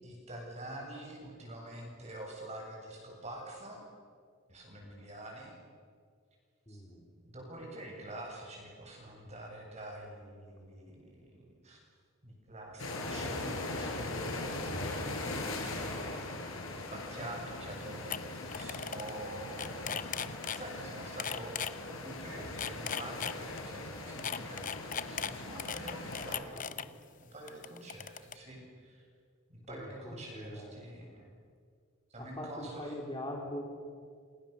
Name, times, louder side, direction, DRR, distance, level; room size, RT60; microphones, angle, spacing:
voice 1, 0.0-3.8 4.5-5.5 6.7-6.8 7.2-11.8 12.2-20.3 20.5-26.9 27.1-29.1 29.5-31.3 32.1-33.0, right 1 dB, 30° right, 0 dB, 7.9 m, -46 dB
voice 2, 6.7-7.0 17.8-18.0 26.4-26.7 29.7-30.8 32.2-33.7, left 1 dB, 20° left, 0 dB, 3.6 m, -43 dB
sound 1, 12.8-26.4, left 2 dB, 75° left, 5.6 m, -40 dB
sound 2, 17.7-17.8 18.1-18.2 18.5-19.1 19.4-20.6 21.2-21.7 22.4-23.6 24.2-26.8 27.5-28.3, left 7 dB, 40° left, 0.8 m, -37 dB
29.5 x 26.5 x 7.0 m, 2.1 s
head